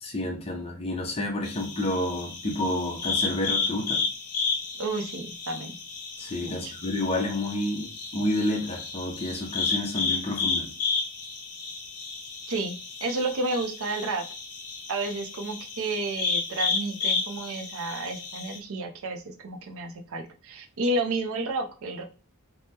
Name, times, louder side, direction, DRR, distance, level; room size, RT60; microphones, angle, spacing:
voice 1, 0.0-4.0 6.2-10.7, left 1 dB, 25° left, 1 dB, 0.6 m, -29 dB
sound 1, 1.4-18.6, left 5 dB, 70° left, 0.6 m, -32 dB
voice 2, 4.8-5.8 6.4-6.7 12.5-14.2 14.9-22.0, right 2 dB, 65° right, 6 dB, 0.5 m, -31 dB
3.4 x 2.1 x 2.8 m, 0.36 s
head